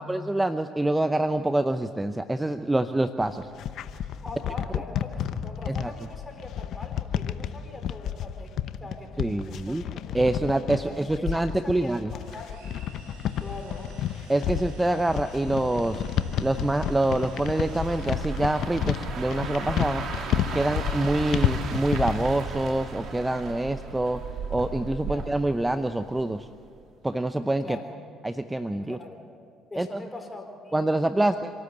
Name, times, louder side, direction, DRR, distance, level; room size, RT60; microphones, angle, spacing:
voice 1, 0.0-3.5 5.7-5.9 9.2-9.8 10.1-12.1 14.3-16.0 16.4-20.0 20.5-24.2 24.5-26.5 27.0-27.8 28.2-29.0 29.8-30.0 30.7-31.5, right 1 dB, 15° right, 10 dB, 0.7 m, -26 dB
sound 1, 3.2-22.3, left 10 dB, 65° left, 0.8 m, -30 dB
voice 2, 4.2-9.8 10.1-10.2 10.8-12.6 13.4-14.0 25.1-25.2 27.6-28.0 28.8-29.2 29.7-30.8 31.1-31.4, left 2 dB, 20° left, 4 dB, 4.4 m, -42 dB
sound 2, 12.2-18.9, right 3 dB, 80° right, 4.2 m, -52 dB
sound 3, 15.3-26.4 26.8-27.0, right 5 dB, 60° right, 2.4 m, -37 dB
26.0 x 13.0 x 8.0 m, 2.3 s
hypercardioid pair, 60°, 0 cm